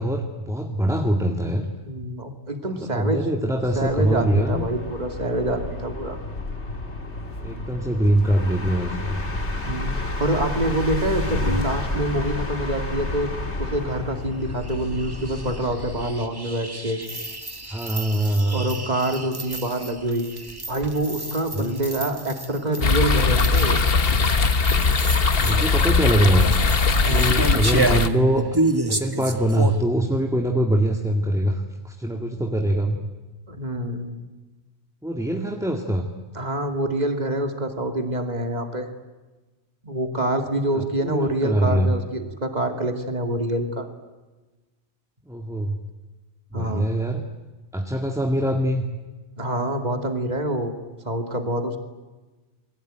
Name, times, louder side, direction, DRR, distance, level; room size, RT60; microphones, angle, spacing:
voice 1, 0.0-1.7 2.6-4.6 7.4-9.4 11.3-11.6 17.7-18.7 21.5-21.8 25.4-26.5 27.1-28.4 28.8-33.0 35.0-36.1 40.7-41.9 45.3-45.8 46.5-47.2 47.7-48.9, right 1 dB, 5° right, 3 dB, 1.9 m, -23 dB
voice 2, 1.8-3.3 3.8-6.2 9.7-13.3 13.6-17.0 18.5-20.3 20.7-23.8 27.0-27.4 33.5-34.2 36.3-38.9 39.8-43.9 46.5-46.9 49.4-50.7 51.0-51.8, right 1 dB, 40° right, 5 dB, 2.7 m, -26 dB
sound 1, 3.6-16.3, left 2 dB, 85° left, 2.9 m, -31 dB
sound 2, 14.4-29.8, right 2 dB, 20° right, 1.8 m, -31 dB
sound 3, 22.8-28.1, left 4 dB, 60° left, 1.5 m, -20 dB
29.5 x 22.0 x 9.1 m, 1.2 s
omnidirectional pair, 1.1 m